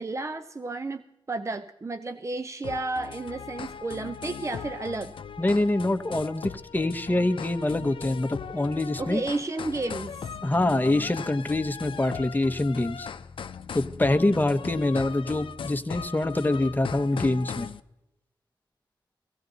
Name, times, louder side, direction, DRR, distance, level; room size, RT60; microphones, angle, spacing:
voice 1, 0.0-5.1 9.0-10.3, right 2 dB, 35° right, 10 dB, 0.6 m, -32 dB
sound 1, 2.6-17.8, left 7 dB, 90° left, 0.5 m, -38 dB
voice 2, 5.4-9.2 10.4-13.1 13.7-17.7, left 2 dB, 20° left, 7 dB, 1.0 m, -25 dB
16.5 x 16.0 x 4.0 m, 0.87 s
cardioid pair, 65°, 9 cm